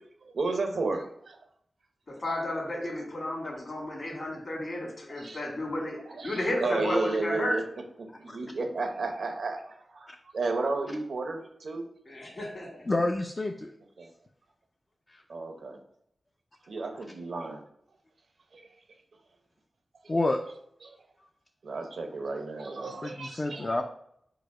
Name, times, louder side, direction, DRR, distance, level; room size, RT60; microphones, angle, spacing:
voice 1, 0.3-1.4 5.2-5.4 6.1-7.6 8.0-10.1 10.3-11.9 14.0-14.1 15.3-15.8 16.7-17.6 18.5-18.6 20.8-21.0 21.6-23.8, right 3 dB, 80° right, 4 dB, 0.7 m, -33 dB
voice 2, 2.2-6.0 6.2-7.6 12.1-12.7, left 1 dB, 50° left, -1 dB, 1.8 m, -32 dB
voice 3, 12.8-13.7 15.1-15.2 20.1-20.4 22.9-23.8, left 2 dB, 35° left, 3 dB, 0.4 m, -29 dB
4.8 x 2.1 x 4.7 m, 0.70 s
wide cardioid pair, 70°, 0 cm